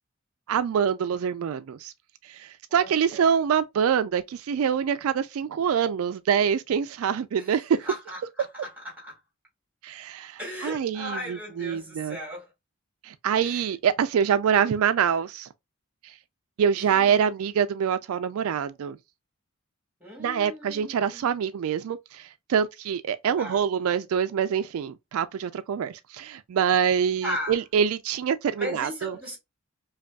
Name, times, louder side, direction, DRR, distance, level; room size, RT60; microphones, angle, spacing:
voice 1, 0.5-1.9 2.2-7.9 9.8-12.2 13.0-15.5 16.0-16.1 16.6-19.0 20.2-29.2, right 7 dB, 80° right, 0.3 m, -25 dB
voice 2, 2.7-3.4 7.4-7.5 7.8-9.2 10.4-12.5 13.4-13.7 16.7-17.3 20.0-21.3 23.4-23.6 27.2-27.6 28.6-29.4, equal, 5° right, 1.9 m, -37 dB
5.0 x 2.3 x 2.2 m
head